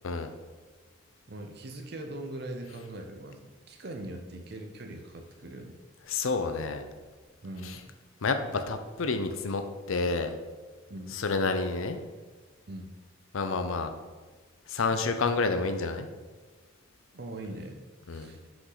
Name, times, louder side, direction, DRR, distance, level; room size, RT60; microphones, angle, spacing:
voice 1, 1.3-5.8 7.4-7.9 10.9-11.2 12.7-12.9 17.1-18.4, right 1 dB, 50° right, 4 dB, 0.6 m, -41 dB
voice 2, 6.1-6.8 7.6-7.8 8.2-9.6 9.9-10.4 11.1-12.0 13.3-13.9 14.7-16.1 18.1-18.3, left 4 dB, 85° left, 8 dB, 0.6 m, -29 dB
6.0 x 5.2 x 4.0 m, 1.3 s
head